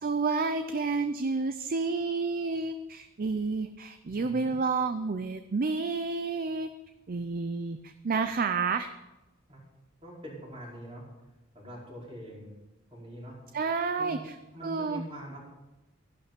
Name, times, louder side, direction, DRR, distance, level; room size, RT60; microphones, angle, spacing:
voice 1, 0.0-6.7 7.1-8.9 13.5-14.2 14.6-15.0, right 4 dB, 45° right, 10 dB, 0.5 m, -30 dB
voice 2, 4.1-4.5 9.5-9.6 10.0-11.0 11.5-12.5 12.9-13.4 14.0-14.2 14.5-15.4, equal, 30° right, -4 dB, 4.6 m, -43 dB
13.5 x 11.5 x 5.2 m, 1.0 s
head